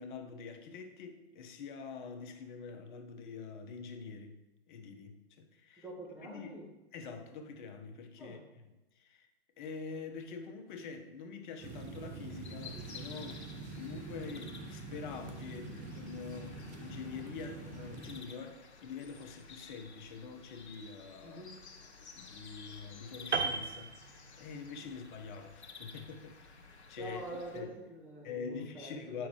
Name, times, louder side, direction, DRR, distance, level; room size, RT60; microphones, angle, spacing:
voice 1, 0.0-4.4 4.7-5.9 6.2-6.6 6.9-8.4 8.9-9.3 9.6-21.4 22.2-26.6 26.9-27.2 27.5-27.7 28.2-29.3, left 5 dB, 45° left, 1.0 m, -45 dB
voice 2, 5.8-6.7 8.2-8.4 21.2-21.7 24.8-24.9 27.0-29.3, right 1 dB, 5° right, 2.0 m, -46 dB
sound 1, 11.6-18.2, right 3 dB, 25° right, 0.7 m, -45 dB
sound 2, 11.7-27.6, left 4 dB, 80° left, 1.1 m, -53 dB
Piano, 23.3-24.8 25.0-25.3, right 5 dB, 90° right, 0.8 m, -35 dB
8.4 x 5.9 x 3.2 m
hypercardioid pair, 115°, 33 cm